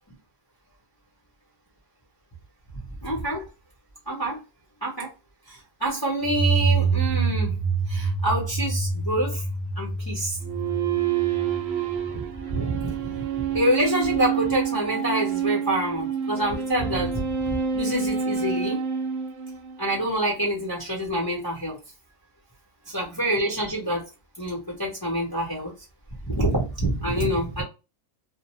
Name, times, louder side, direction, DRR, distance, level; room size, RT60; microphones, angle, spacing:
voice 1, 3.0-3.5 4.1-4.4 4.8-5.1 5.5-7.6 7.9-9.4 9.8-10.4 12.1-12.2 12.5-12.9 13.5-18.8 19.8-21.8 22.9-24.1 24.4-25.7 26.2-27.6, right 1 dB, 20° left, 0.8 m, -26 dB
sound 1, 6.2-12.8, right 4 dB, 65° left, 1.2 m, -26 dB
sound 2, 10.4-20.1, right 7 dB, 70° right, 0.6 m, -28 dB
2.6 x 2.1 x 3.0 m
omnidirectional pair, 1.6 m